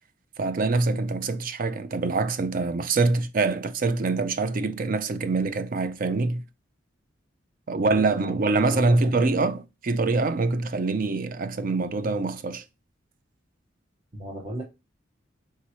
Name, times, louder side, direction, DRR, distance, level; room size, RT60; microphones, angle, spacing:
voice 1, 0.4-6.4 7.7-12.6, right 3 dB, 45° right, 0.4 m, -25 dB
voice 2, 7.7-9.3 14.1-14.6, right 1 dB, 30° right, 0.9 m, -35 dB
3.7 x 2.9 x 4.2 m
head